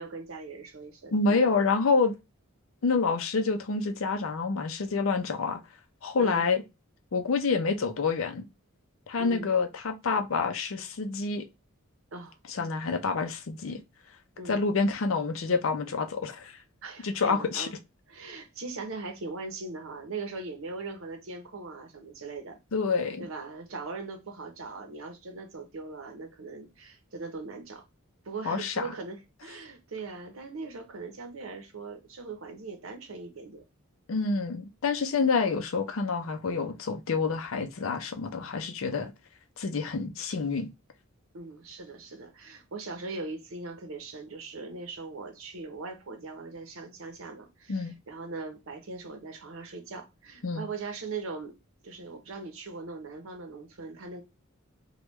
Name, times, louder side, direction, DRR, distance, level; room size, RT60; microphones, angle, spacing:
voice 1, 0.0-1.5 6.2-6.5 9.2-9.5 12.1-12.4 14.4-14.6 16.8-17.7 18.1-22.6 23.2-27.8 28.2-33.6 41.3-51.6 51.8-54.2, right 3 dB, 70° right, 0.7 m, -40 dB
voice 2, 1.1-2.2 2.8-5.6 6.0-6.6 7.1-8.4 9.1-11.4 12.5-13.8 14.5-16.6 17.0-17.7 22.7-23.3 28.5-28.8 34.1-39.1 39.6-40.7 47.7-47.9 50.4-50.7, left 4 dB, 65° left, 0.5 m, -27 dB
3.3 x 2.2 x 3.0 m
head